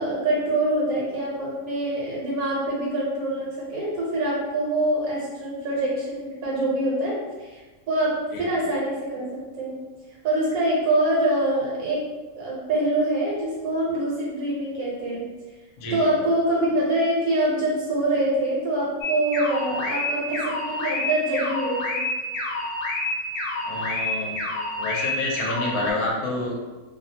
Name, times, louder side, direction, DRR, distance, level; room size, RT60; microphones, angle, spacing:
voice 1, 0.0-7.6 7.9-9.2 9.6-9.7 10.2-12.0 12.4-15.2 15.9-22.0, right 1 dB, 75° right, -5 dB, 1.2 m, -25 dB
voice 2, 15.8-16.1 23.7-24.4 24.8-26.5, left 2 dB, 85° left, -2 dB, 1.1 m, -28 dB
sound 1, 19.0-25.9, left 1 dB, 60° left, 0.7 m, -28 dB
2.7 x 2.1 x 2.7 m, 1.3 s
omnidirectional pair, 1.6 m